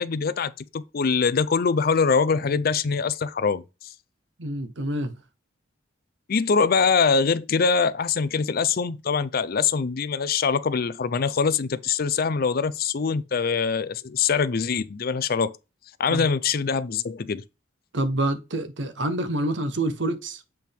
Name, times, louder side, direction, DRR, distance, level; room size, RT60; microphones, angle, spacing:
voice 1, 0.0-3.6 6.3-15.6 16.0-17.4, left 5 dB, 50° left, 0.5 m, -23 dB
voice 2, 4.4-5.2 16.1-16.3 17.9-20.4, right 1 dB, 65° right, 1.0 m, -27 dB
7.7 x 4.6 x 3.5 m
head